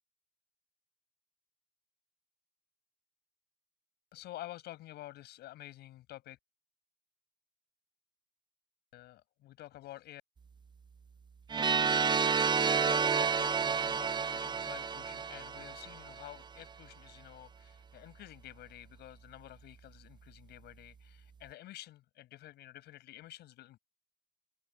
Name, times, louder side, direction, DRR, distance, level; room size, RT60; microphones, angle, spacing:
voice 1, 4.1-6.4 8.9-10.2 12.6-23.8, left 15 dB, 75° left, 7.2 m, -50 dB
sound 1, 11.5-16.3, right 6 dB, 25° right, 0.7 m, -30 dB
open air
cardioid pair, 110°, 17 cm